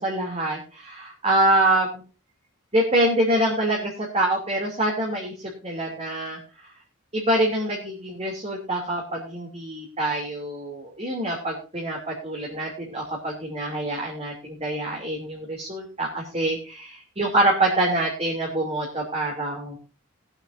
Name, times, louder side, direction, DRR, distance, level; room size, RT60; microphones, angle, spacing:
voice 1, 0.0-2.0 2.7-6.4 7.1-19.8, right 1 dB, 30° right, -2 dB, 2.9 m, -25 dB
21.0 x 8.8 x 2.7 m, 0.36 s
head